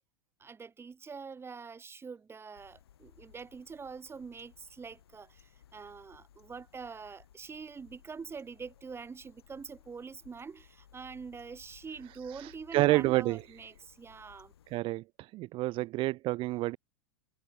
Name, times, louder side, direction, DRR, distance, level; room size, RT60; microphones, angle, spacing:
voice 1, 0.4-14.5, right 5 dB, 20° right, 3.7 m, -45 dB
sound 1, 2.5-14.8, left 10 dB, 80° left, 6.5 m, -61 dB
voice 2, 12.3-13.4 14.7-16.8, right 19 dB, 45° right, 0.6 m, -29 dB
hypercardioid pair, 95°, 13 cm